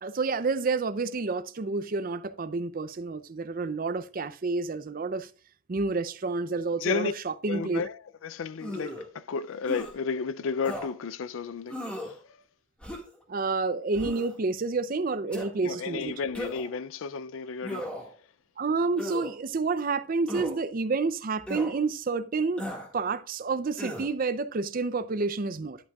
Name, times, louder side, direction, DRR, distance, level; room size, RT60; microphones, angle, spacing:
voice 1, 0.0-5.3 5.7-7.8 13.3-16.1 18.6-25.8, right 4 dB, 40° right, 0.5 m, -29 dB
voice 2, 6.8-7.1 7.5-12.4 15.6-17.9, left 5 dB, 65° left, 0.4 m, -33 dB
sound 1, 8.6-9.1 9.7-9.9 10.6-10.9 11.7-12.1 12.8-13.2 13.9-14.3 15.3-15.5 16.3-16.7 17.6-18.1 19.0-19.3 20.3-20.6 21.5-21.7 22.6-22.9 23.8-24.1, equal, 5° left, 1.7 m, -36 dB
11.0 x 8.5 x 2.3 m
head